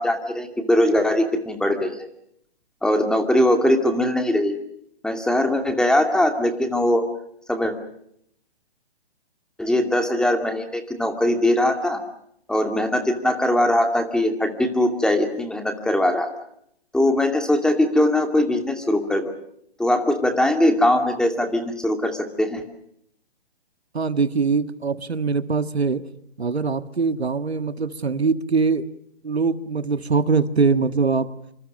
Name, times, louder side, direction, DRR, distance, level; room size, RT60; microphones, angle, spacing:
voice 1, 0.0-2.0 2.8-4.5 5.0-7.0 7.5-7.7 9.6-12.0 12.5-16.3 16.9-19.3 19.8-22.6, left 1 dB, ahead, 5 dB, 2.4 m, -21 dB
voice 2, 23.9-26.0 26.4-28.9 29.2-31.3, right 4 dB, 85° right, 11 dB, 1.7 m, -22 dB
27.0 x 26.0 x 6.5 m, 0.72 s
figure-of-eight pair, 135°, 31 cm